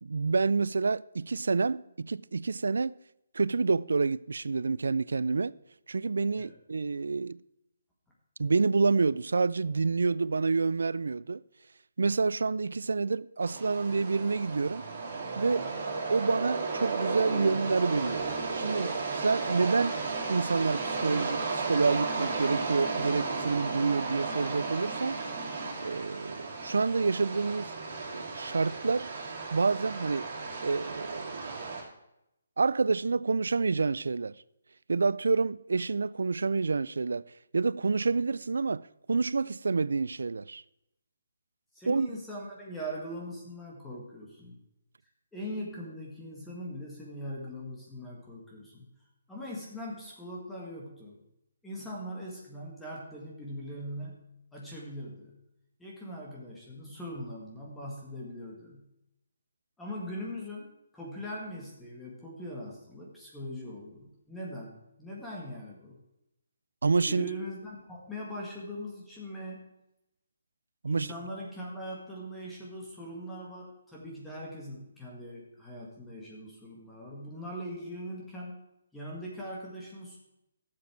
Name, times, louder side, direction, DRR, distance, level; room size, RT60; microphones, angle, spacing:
voice 1, 0.0-3.0 3.3-5.5 5.9-7.4 8.4-11.4 12.0-14.8 15.4-15.7 16.1-19.9 20.3-25.2 25.8-27.7 28.1-29.1 29.5-30.3 30.6-31.6 32.6-34.4 34.9-37.2 37.5-40.6 41.9-42.1 66.8-67.3 70.8-71.1, right 4 dB, 80° right, 0.3 m, -28 dB
sound 1, 13.4-31.8, right 4 dB, 45° right, 3.1 m, -34 dB
voice 2, 41.7-44.6 45.3-48.9 49.3-51.2 51.6-55.4 55.8-58.9 59.8-66.0 67.1-69.7 70.9-78.6 78.9-80.2, equal, 5° left, 1.7 m, -41 dB
12.0 x 7.4 x 4.6 m
hypercardioid pair, 155°, 0 cm